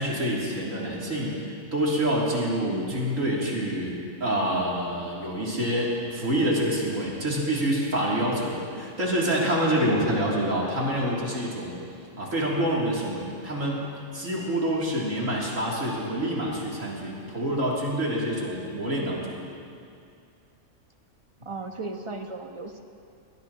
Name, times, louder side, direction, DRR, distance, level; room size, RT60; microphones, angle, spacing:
voice 1, 0.0-1.4 1.7-11.7 12.2-13.9 14.1-19.4, right 1 dB, 75° right, -5 dB, 3.5 m, -27 dB
voice 2, 2.6-3.0 21.4-22.8, right 3 dB, 25° right, 4 dB, 1.1 m, -36 dB
21.5 x 21.0 x 3.0 m, 2.4 s
omnidirectional pair, 1.3 m